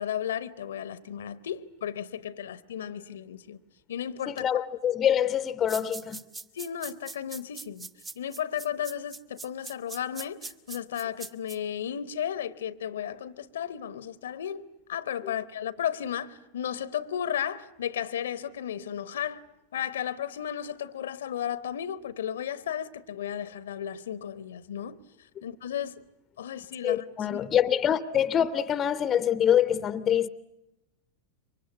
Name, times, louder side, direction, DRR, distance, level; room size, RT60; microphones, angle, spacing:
voice 1, 0.0-3.6 3.9-4.4 6.5-7.9 8.2-19.4 19.7-25.0 25.4-26.0 26.4-27.0 27.3-27.4, left 9 dB, 60° left, 1.0 m, -34 dB
voice 2, 4.3-6.2 15.2-15.3 26.8-30.3, left 9 dB, 25° left, 0.9 m, -25 dB
sound 1, 5.7-11.6, right 3 dB, 15° right, 1.2 m, -41 dB
26.5 x 24.5 x 8.3 m
figure-of-eight pair, 90°, 0 cm